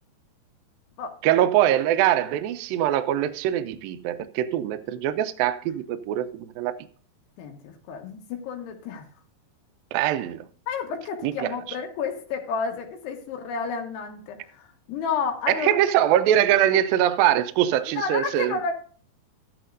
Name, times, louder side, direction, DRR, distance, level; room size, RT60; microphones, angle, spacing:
voice 1, 1.2-6.7 9.9-10.5 11.2-11.5 15.5-18.6, right 11 dB, 80° right, 2.2 m, -23 dB
voice 2, 7.4-9.1 10.7-15.8 17.9-18.7, left 5 dB, 90° left, 3.6 m, -31 dB
13.5 x 10.0 x 2.6 m
omnidirectional pair, 4.6 m